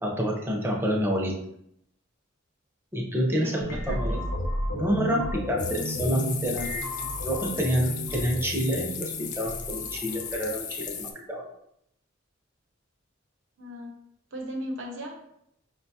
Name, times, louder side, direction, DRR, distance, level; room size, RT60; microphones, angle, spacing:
voice 1, 0.0-1.3 2.9-4.2 4.7-6.8 7.2-11.5, equal, 10° right, -1 dB, 0.6 m, -28 dB
voice 2, 3.4-4.2 13.6-13.9 14.3-15.3, equal, 75° right, 1 dB, 0.9 m, -37 dB
sound 1, 3.6-10.5, equal, 80° left, 0.9 m, -33 dB
sound 2, 5.6-11.1, left 7 dB, 40° left, 0.4 m, -36 dB
4.8 x 2.3 x 2.7 m, 0.74 s
head